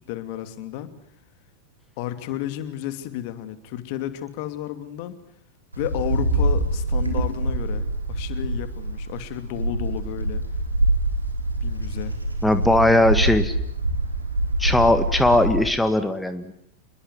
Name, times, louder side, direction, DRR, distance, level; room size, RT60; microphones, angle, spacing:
voice 1, 0.1-0.9 2.0-5.2 5.7-10.4 11.6-12.2, left 12 dB, 45° left, 11 dB, 2.7 m, -32 dB
Wind, 5.7-15.7, right 1 dB, 85° right, 4.7 m, -25 dB
voice 2, 12.4-13.5 14.6-16.5, left 1 dB, 5° left, 10 dB, 1.8 m, -19 dB
27.5 x 22.0 x 9.5 m, 0.67 s
figure-of-eight pair, 90°, 0 cm